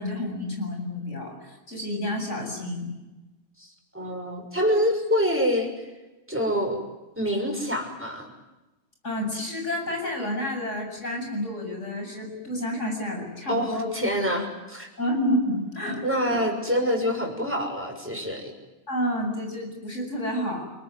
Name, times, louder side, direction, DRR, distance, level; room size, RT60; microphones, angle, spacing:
voice 1, 0.0-2.9 9.0-13.9 15.0-16.4 18.9-20.6, left 1 dB, 60° left, 2 dB, 8.5 m, -29 dB
voice 2, 3.6-5.7 6.3-6.8 7.2-8.3 13.5-14.9 16.0-18.5, equal, 10° right, 2 dB, 6.4 m, -26 dB
29.5 x 20.0 x 9.5 m, 1.1 s
omnidirectional pair, 1.4 m